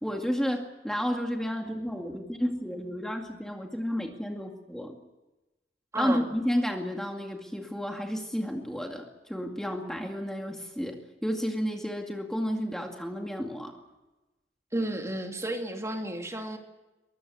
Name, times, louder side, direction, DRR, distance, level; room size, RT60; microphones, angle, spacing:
voice 1, 0.0-5.0 6.0-9.0 9.3-11.0 11.2-13.7, equal, 5° left, 2 dB, 2.3 m, -31 dB
voice 2, 5.9-6.3 14.7-16.6, right 1 dB, 15° right, 3 dB, 2.5 m, -32 dB
23.0 x 22.0 x 8.0 m, 1.1 s
head